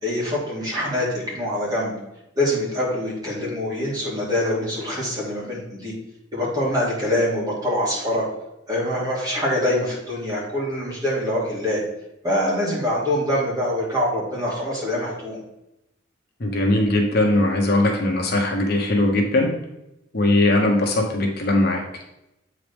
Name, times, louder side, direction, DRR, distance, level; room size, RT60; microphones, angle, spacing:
voice 1, 0.0-1.9 2.4-5.9 6.3-8.2 8.7-11.8 12.2-15.4, left 1 dB, 20° right, -6 dB, 2.6 m, -24 dB
voice 2, 16.4-19.5 20.1-21.8, left 1 dB, 55° left, 1 dB, 1.2 m, -20 dB
8.2 x 4.8 x 3.5 m, 0.88 s
head